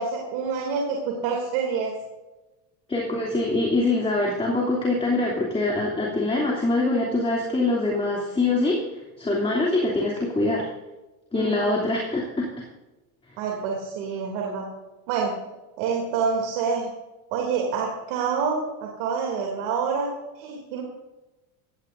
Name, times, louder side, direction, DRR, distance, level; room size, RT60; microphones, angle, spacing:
voice 1, 0.0-1.9 11.3-11.7 13.4-14.7 15.1-15.3 15.8-16.9 17.3-20.1 20.4-20.8, right 5 dB, 70° right, 0 dB, 3.0 m, -27 dB
voice 2, 2.9-8.8 9.2-10.7 11.3-12.7, left 2 dB, 10° left, -3 dB, 2.9 m, -24 dB
16.5 x 15.5 x 2.7 m, 1.1 s
supercardioid pair, 115°, 46 cm